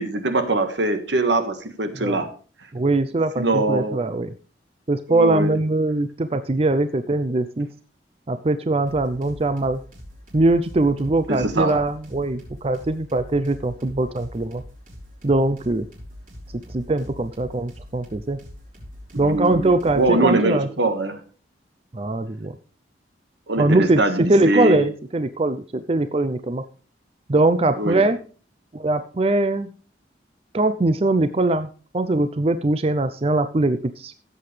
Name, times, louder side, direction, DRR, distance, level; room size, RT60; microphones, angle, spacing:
voice 1, 0.0-2.3 3.4-4.0 5.1-5.6 11.3-11.8 19.1-21.2 23.5-24.8 27.8-28.1, right 2 dB, 80° right, 8 dB, 1.6 m, -22 dB
voice 2, 2.7-4.3 4.9-7.7 8.3-9.8 10.3-14.6 15.2-15.9 16.7-18.4 19.2-20.7 21.9-22.5 23.6-26.6 27.3-28.2 28.7-29.7 30.5-31.7 31.9-34.1, right 2 dB, 35° right, 11 dB, 0.5 m, -21 dB
sound 1, 8.9-20.2, equal, 50° right, 5.2 m, -42 dB
16.0 x 7.8 x 3.3 m, 0.39 s
head